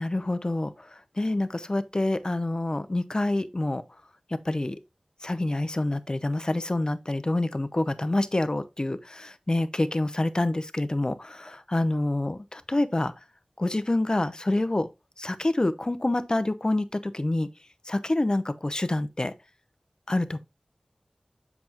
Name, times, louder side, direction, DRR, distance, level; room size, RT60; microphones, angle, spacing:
voice 1, 0.0-3.8 4.3-4.8 5.2-13.1 13.6-14.9 15.2-17.5 17.9-19.3 20.1-20.4, left 2 dB, 35° left, 0.7 m, -27 dB
7.7 x 5.9 x 2.8 m
wide cardioid pair, 55°, 2 cm